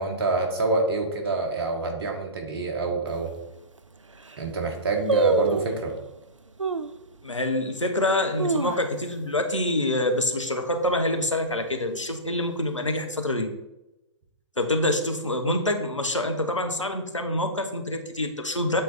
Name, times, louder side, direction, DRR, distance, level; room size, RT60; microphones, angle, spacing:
voice 1, 0.0-3.3 4.4-5.9, right 3 dB, 50° right, 3 dB, 1.6 m, -26 dB
sound 1, 3.1-3.2 3.8-3.9 4.1-4.5 5.1-5.8 6.6-7.0 7.5-7.6 8.1-9.3 9.6-9.7 10.0-10.4 10.8-11.1 11.8-12.5 12.8-12.9, right 4 dB, 90° right, 0.4 m, -27 dB
voice 2, 7.2-13.5 14.6-18.8, left 1 dB, 85° left, 5 dB, 1.0 m, -26 dB
8.4 x 4.0 x 4.3 m, 0.94 s
figure-of-eight pair, 120°, 16 cm